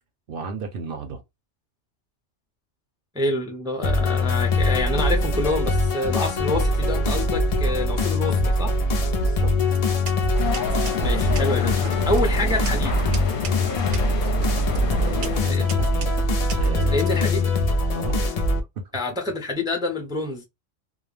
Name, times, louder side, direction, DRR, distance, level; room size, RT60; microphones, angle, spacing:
voice 1, 0.3-1.2 9.2-9.5 15.0-16.2 16.6-17.3 17.9-18.2 18.5-18.6, right 4 dB, 60° right, 0.7 m, -34 dB
voice 2, 3.1-8.7 11.0-13.0 15.4-15.7 16.9-17.5 18.9-20.4, left 2 dB, 5° right, 0.4 m, -27 dB
Space Synth, 3.8-18.6, left 1 dB, 70° left, 0.3 m, -22 dB
sound 1, 9.6-17.3, right 7 dB, 85° right, 0.9 m, -36 dB
sound 2, 10.3-15.4, left 5 dB, 55° left, 0.7 m, -29 dB
2.3 x 2.1 x 3.1 m
omnidirectional pair, 1.2 m